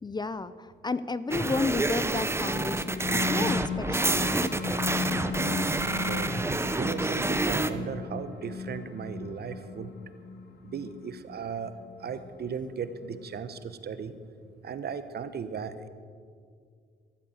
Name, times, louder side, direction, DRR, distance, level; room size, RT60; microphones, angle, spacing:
voice 1, 0.0-4.5, left 3 dB, 20° left, 15 dB, 0.5 m, -32 dB
sound 1, 1.3-7.7, right 2 dB, 15° right, 0.9 m, -28 dB
sound 2, 2.7-13.6, left 5 dB, 60° left, 1.8 m, -36 dB
voice 2, 5.0-6.3 6.8-9.9 10.6-14.1 14.6-15.9, right 6 dB, 55° right, 12 dB, 1.1 m, -37 dB
13.5 x 13.0 x 7.9 m, 2.1 s
cardioid pair, 90°, 20 cm